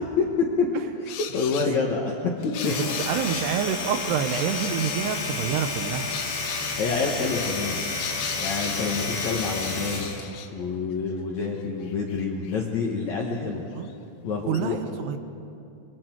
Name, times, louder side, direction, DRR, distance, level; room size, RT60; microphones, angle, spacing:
voice 1, 0.2-0.7 1.0-2.1 2.6-2.7 6.5-7.8 8.4-10.1 10.5-13.7 14.2-14.8, left 4 dB, 60° left, 0 dB, 1.9 m, -27 dB
sound 1, 1.1-1.7 2.4-3.6 4.3-5.0 6.1-6.8 7.3-10.5 11.1-11.2 11.4-12.6 13.8-13.9 14.5-14.6, left 9 dB, 90° left, 3.4 m, -37 dB
Domestic sounds home sounds, 2.4-10.3, left 3 dB, 45° left, 1.8 m, -31 dB
voice 2, 2.8-6.1 13.8-13.9 14.5-15.2, right 8 dB, 75° right, 9 dB, 2.7 m, -27 dB
sound 2, 3.3-10.2, equal, 15° right, 3.9 m, -48 dB
25.5 x 25.0 x 4.5 m, 2.6 s
omnidirectional pair, 5.1 m